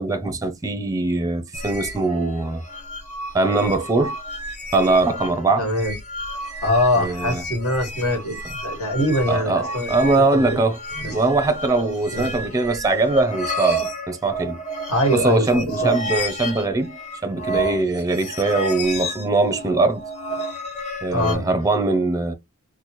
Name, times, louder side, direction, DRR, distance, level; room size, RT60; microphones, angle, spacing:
voice 1, 0.0-2.6 3.3-4.1 4.7-5.7 7.0-7.4 9.3-14.6 15.1-20.0 21.0-22.3, right 3 dB, 15° right, 0.5 m, -21 dB
sound 1, 1.5-21.3, right 1 dB, 35° left, 1.1 m, -31 dB
voice 2, 5.6-5.9 6.6-9.9 10.3-10.6 11.0-11.1 12.1-12.3 14.9-15.9 21.1-21.4, left 1 dB, 70° left, 1.8 m, -23 dB
4.0 x 2.1 x 3.0 m
head